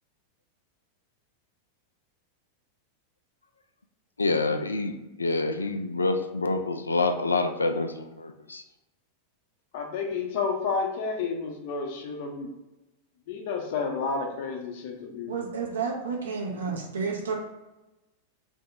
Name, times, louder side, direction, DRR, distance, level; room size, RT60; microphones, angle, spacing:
voice 1, 4.2-4.9 5.2-8.6, left 3 dB, 80° left, 7 dB, 0.3 m, -27 dB
voice 2, 9.7-12.5 13.3-15.3, left 5 dB, 50° left, 2 dB, 0.7 m, -30 dB
voice 3, 15.3-17.3, right 5 dB, 65° right, -1 dB, 0.8 m, -31 dB
2.8 x 2.7 x 3.5 m, 1.0 s
figure-of-eight pair, 90°, 0 cm